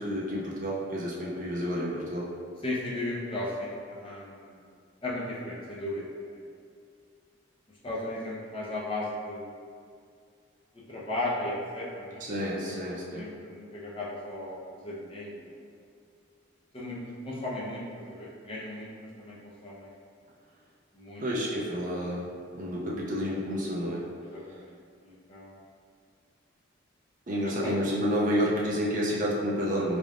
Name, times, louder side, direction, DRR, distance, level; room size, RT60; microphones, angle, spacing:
voice 1, 0.0-2.3 12.2-13.2 21.2-22.3 22.5-24.0 27.3-30.0, equal, 40° right, -5 dB, 0.5 m, -30 dB
voice 2, 2.6-4.6 5.0-6.4 7.8-9.5 10.9-12.2 12.7-12.8 13.1-15.6 16.7-17.0 17.2-19.4 19.6-19.9 20.9-21.2 24.2-24.7 25.0-25.6 27.3-27.8 28.3-28.4, left 1 dB, 25° left, -6 dB, 0.7 m, -36 dB
4.0 x 3.4 x 2.4 m, 2.3 s
head